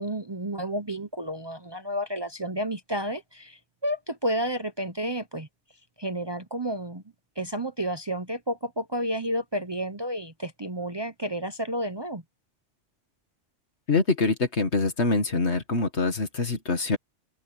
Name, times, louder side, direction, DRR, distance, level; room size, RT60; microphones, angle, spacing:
voice 1, 0.0-5.5 6.0-7.0 7.4-12.2, equal, 25° right, 0.8 m, -31 dB
voice 2, 13.9-17.0, left 3 dB, 65° left, 2.3 m, -25 dB
open air
omnidirectional pair, 1.2 m